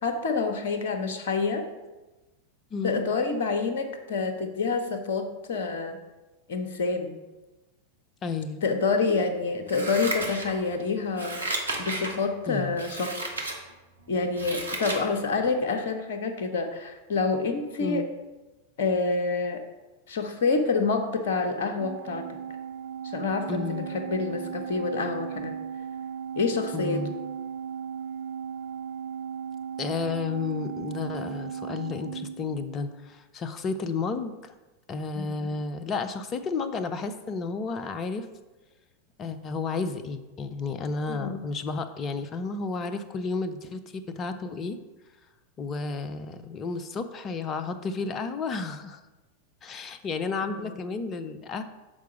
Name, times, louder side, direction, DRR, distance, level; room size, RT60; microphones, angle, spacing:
voice 1, 0.0-1.7 2.8-6.0 6.5-7.2 8.6-11.4 11.8-13.2 14.1-18.1 18.8-19.6 20.1-22.3 23.0-25.6 26.4-27.1 35.1-35.5 41.1-41.4 50.5-50.8, left 4 dB, 55° left, 6 dB, 0.9 m, -27 dB
voice 2, 2.7-3.0 8.2-8.6 12.5-12.8 17.8-18.1 23.5-23.9 26.7-27.1 29.8-34.5 34.9-38.3 39.2-44.8 45.6-49.0 49.6-51.6, left 4 dB, 30° left, 10 dB, 0.6 m, -32 dB
Scissors, 9.7-10.8 11.1-12.2 12.7-13.6 14.0-15.1 15.4-15.5, right 2 dB, 80° right, 1.1 m, -33 dB
Organ, 21.8-33.0, right 7 dB, 50° right, 0.4 m, -36 dB
7.3 x 4.6 x 4.9 m, 1.1 s
figure-of-eight pair, 90°, 0 cm